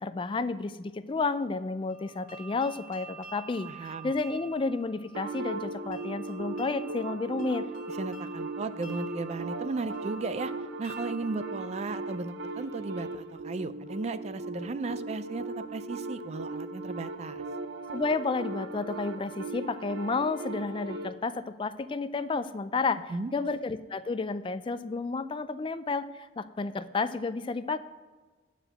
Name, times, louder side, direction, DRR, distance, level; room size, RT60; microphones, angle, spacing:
voice 1, 0.0-7.7 17.9-23.0 23.3-27.8, left 3 dB, 30° left, 13 dB, 0.3 m, -31 dB
sound 1, 1.9-12.7, right 6 dB, 55° left, 1.7 m, -50 dB
voice 2, 3.6-4.1 8.0-10.5 10.8-17.4 23.1-23.3, right 3 dB, 40° right, 13 dB, 0.4 m, -35 dB
sound 2, 5.1-21.1, right 2 dB, 90° right, 0.6 m, -38 dB
9.2 x 4.9 x 7.6 m, 1.3 s
head